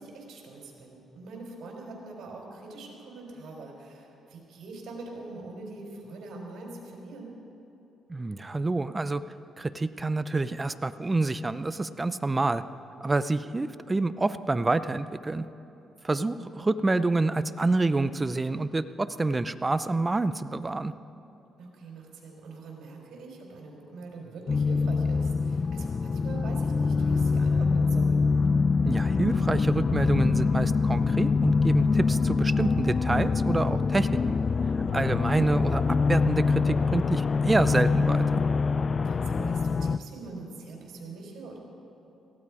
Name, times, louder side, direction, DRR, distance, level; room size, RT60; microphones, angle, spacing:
voice 1, 0.0-7.4 16.6-16.7 21.6-28.2 34.9-35.2 39.0-41.6, right 3 dB, 70° right, 0 dB, 4.0 m, -43 dB
voice 2, 8.1-9.2 9.6-12.6 13.0-15.4 16.0-20.9 28.8-34.4 34.9-35.8 36.1-38.4, right 2 dB, 20° right, 13 dB, 0.6 m, -27 dB
sound 1, 24.5-40.0, left 4 dB, 40° left, 0.4 m, -24 dB
18.5 x 15.5 x 4.9 m, 3.0 s
cardioid pair, 90°, 0 cm